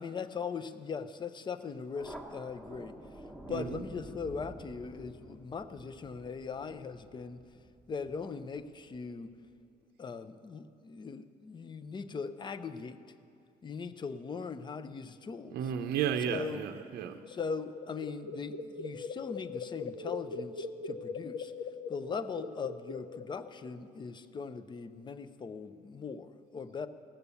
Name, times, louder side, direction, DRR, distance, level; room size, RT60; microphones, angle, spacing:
voice 1, 0.0-3.0 3.5-7.4 7.9-9.3 10.0-13.0 13.6-15.7 16.3-16.6 17.3-21.5 21.9-26.9, left 5 dB, 25° left, 12 dB, 0.6 m, -40 dB
Thunder, 1.9-9.0, right 1 dB, 5° left, 1.2 m, -50 dB
voice 2, 3.5-3.8 15.5-17.2, right 8 dB, 70° right, 6 dB, 0.6 m, -33 dB
sound 1, 17.0-23.7, left 4 dB, 90° left, 0.6 m, -41 dB
17.5 x 6.9 x 7.0 m, 2.5 s
cardioid pair, 110°, 17 cm